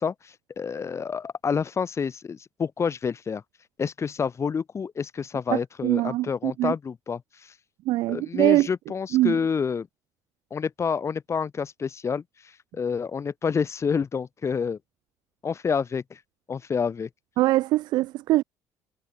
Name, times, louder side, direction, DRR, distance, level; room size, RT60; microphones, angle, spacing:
voice 1, 0.0-3.4 3.8-7.5 8.1-9.9 10.5-12.2 12.7-14.8 15.4-16.2 16.5-17.1, left 6 dB, 40° left, 5.0 m, -28 dB
voice 2, 5.5-6.7 7.8-8.7 9.1-9.4 17.4-18.4, right 17 dB, 75° right, 1.7 m, -23 dB
supercardioid pair, 70°, 7 cm